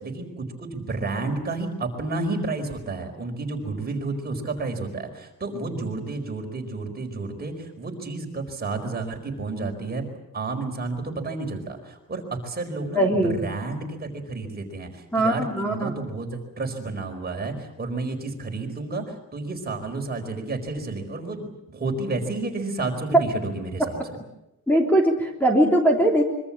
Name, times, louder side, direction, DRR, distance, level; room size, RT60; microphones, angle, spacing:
voice 1, 0.0-10.0 10.3-19.0 19.3-24.0, right 3 dB, 25° right, 3 dB, 4.8 m, -31 dB
voice 2, 12.9-13.4 15.1-15.9 24.7-26.2, right 1 dB, 5° left, 0 dB, 3.4 m, -20 dB
25.5 x 24.0 x 7.4 m, 0.88 s
wide cardioid pair, 165°, 34 cm